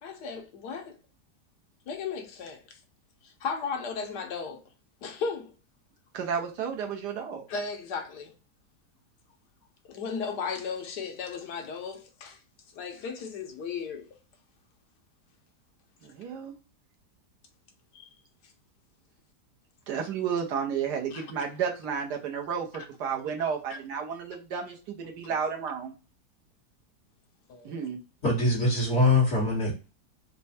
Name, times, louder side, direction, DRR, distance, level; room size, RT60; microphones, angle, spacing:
voice 1, 0.0-1.0 1.9-2.8 3.2-4.6 5.0-5.5 7.5-8.3 9.8-12.4 12.7-14.1 17.9-18.1 21.1-21.5 23.7-23.8 27.5-27.9, left 5 dB, 75° left, 1.4 m, -35 dB
voice 2, 6.1-7.4 16.0-16.5 19.9-25.9 27.6-28.0, right 7 dB, 75° right, 1.5 m, -32 dB
voice 3, 28.2-29.7, left 2 dB, 45° left, 1.7 m, -23 dB
4.3 x 2.3 x 4.1 m
omnidirectional pair, 1.8 m